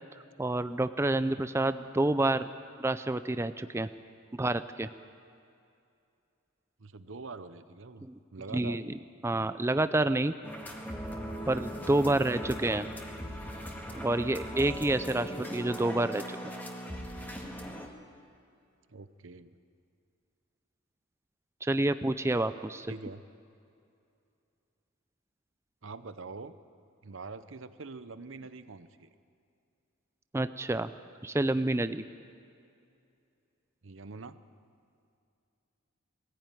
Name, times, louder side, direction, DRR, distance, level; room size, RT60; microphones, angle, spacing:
voice 1, 0.4-2.5 2.8-3.9 4.3-4.9 8.0-8.1 8.5-8.8 9.2-10.3 11.5-12.9 13.9-16.5 21.6-22.9 30.3-30.9 31.2-32.0, right 2 dB, 15° right, 12 dB, 0.4 m, -28 dB
voice 2, 6.8-8.8 12.1-12.6 18.9-19.6 22.9-23.2 25.8-26.6 27.0-29.1 33.8-34.4, right 3 dB, 65° right, 13 dB, 0.8 m, -44 dB
sound 1, 10.4-17.9, equal, 10° left, 1.9 m, -39 dB
20.5 x 15.5 x 9.2 m, 2.5 s
head